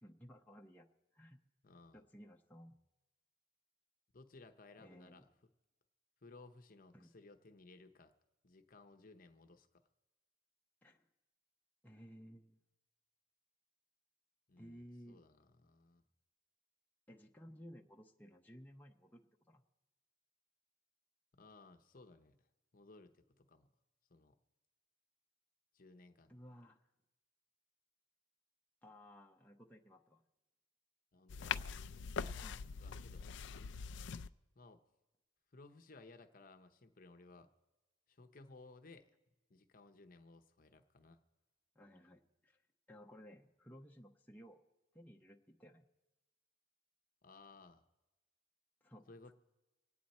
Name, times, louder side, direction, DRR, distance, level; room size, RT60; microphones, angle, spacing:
voice 1, 0.0-0.9 1.1-1.4 1.9-2.8 4.8-5.3 6.9-7.1 10.8-11.1 11.8-12.6 14.6-15.2 17.1-19.6 26.3-26.8 28.8-30.2 32.4-32.6 41.7-42.6 42.9-44.6 44.9-45.9 48.8-49.1, equal, 10° left, 0 dB, 0.7 m, -57 dB
voice 2, 1.6-2.0 4.1-5.3 6.2-8.1 8.4-9.8 14.5-16.0 21.3-22.5 22.7-23.7 24.1-24.4 25.7-26.3 31.1-31.6 32.1-32.4 32.8-33.2 34.6-34.8 35.5-37.5 38.1-39.1 39.5-41.2 47.2-47.8 49.1-49.3, left 3 dB, 45° left, 7 dB, 0.8 m, -59 dB
sound 1, 31.3-34.3, left 6 dB, 60° left, 0.4 m, -42 dB
25.0 x 9.2 x 4.2 m, 1.1 s
head